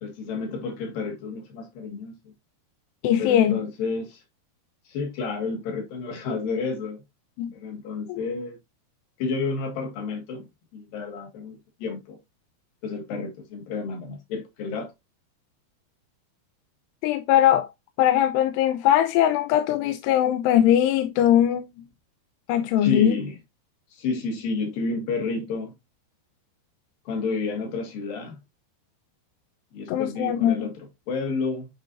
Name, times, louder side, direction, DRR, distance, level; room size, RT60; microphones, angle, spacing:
voice 1, 0.0-2.3 3.2-4.2 4.9-7.0 7.5-8.6 9.2-10.5 10.7-12.2 12.8-14.9 22.8-23.4 23.9-25.7 27.1-28.4 29.7-31.7, left 4 dB, 60° left, 3.3 m, -30 dB
voice 2, 3.0-3.6 7.4-7.5 8.1-8.2 17.0-17.7 18.0-21.7 22.5-23.2 29.9-30.7, left 11 dB, 85° left, 2.7 m, -20 dB
9.1 x 4.6 x 2.6 m
omnidirectional pair, 4.8 m